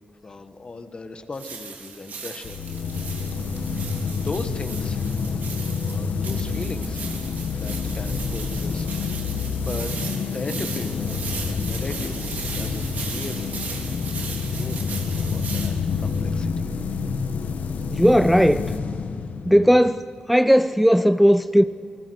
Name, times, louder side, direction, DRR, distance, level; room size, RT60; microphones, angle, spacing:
voice 1, 0.2-2.6 3.6-5.0 5.8-7.0 7.4-8.9 9.6-9.9 10.3-13.9 14.5-14.9 15.3-15.7 16.0-16.7, left 3 dB, 40° left, 1.6 m, -37 dB
sound 1, 1.3-16.2, right 5 dB, 90° right, 3.4 m, -37 dB
sound 2, 2.4-20.0, left 5 dB, 85° left, 1.6 m, -28 dB
voice 2, 17.9-18.7 19.5-21.6, equal, ahead, 0.5 m, -17 dB
28.0 x 20.0 x 6.5 m
wide cardioid pair, 105°, 3 cm